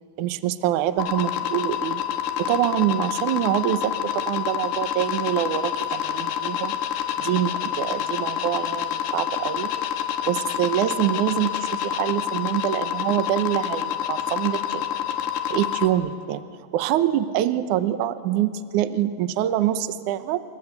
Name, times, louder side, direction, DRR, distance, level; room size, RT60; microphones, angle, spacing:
voice 1, 0.2-2.0 2.4-6.7 7.2-9.7 10.3-14.9 15.5-16.4 16.7-20.4, right 12 dB, 70° right, 11 dB, 2.1 m, -25 dB
sound 1, 1.0-15.9, left 10 dB, 85° left, 3.4 m, -28 dB
29.0 x 25.0 x 8.2 m, 2.2 s
omnidirectional pair, 4.4 m